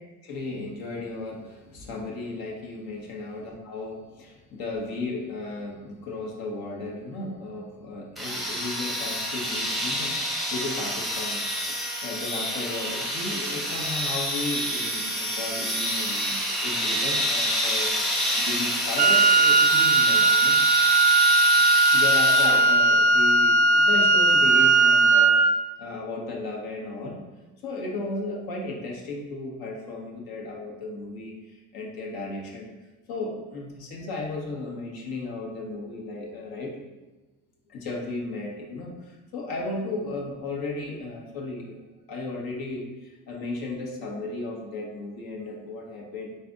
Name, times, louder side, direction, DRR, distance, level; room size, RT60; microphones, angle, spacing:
voice 1, 0.2-20.6 21.6-21.7 21.9-25.4 25.8-27.2 27.6-32.7 33.1-36.8 37.7-46.4, left 2 dB, 65° left, -1 dB, 1.3 m, -35 dB
sound 1, 8.2-22.9, equal, ahead, 0.7 m, -28 dB
Wind instrument woodwind instrument, 19.0-25.6, right 3 dB, 20° right, 0.3 m, -18 dB
4.0 x 3.3 x 3.7 m, 1.1 s
supercardioid pair, 85°, 40 cm